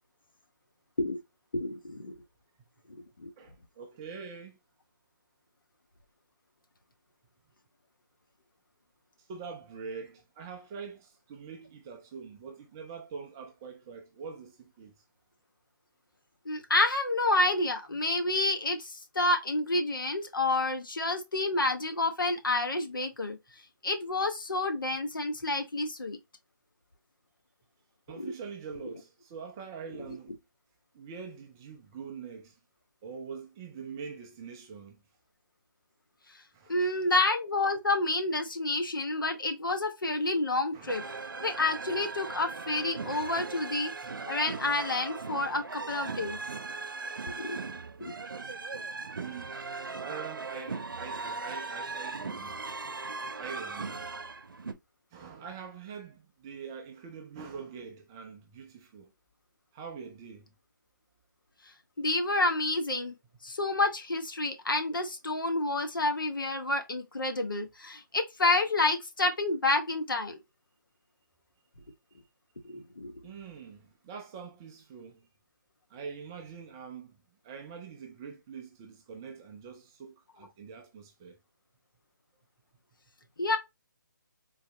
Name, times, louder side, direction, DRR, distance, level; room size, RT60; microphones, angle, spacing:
voice 1, 1.5-2.2 2.9-3.3 16.4-23.4 23.8-26.2 28.2-28.3 36.7-41.0 41.4-43.9 44.3-46.4 47.3-47.6 48.0-48.1 62.0-63.1 63.4-70.4 72.6-73.1 83.4-83.6, left 2 dB, 85° left, 1.2 m, -29 dB
voice 2, 3.4-4.6 9.3-14.9 28.1-30.3 30.9-32.5 33.0-35.0 36.5-36.9 40.7-41.1 45.4-45.6 49.2-49.7 50.0-52.6 53.4-53.9 55.1-59.1 59.7-60.5 73.2-75.3 75.9-77.2 77.4-81.4, right 6 dB, 10° right, 0.3 m, -44 dB
sound 1, 40.9-54.7, right 4 dB, 85° right, 0.7 m, -38 dB
3.9 x 3.0 x 2.8 m
hypercardioid pair, 160°, 11 cm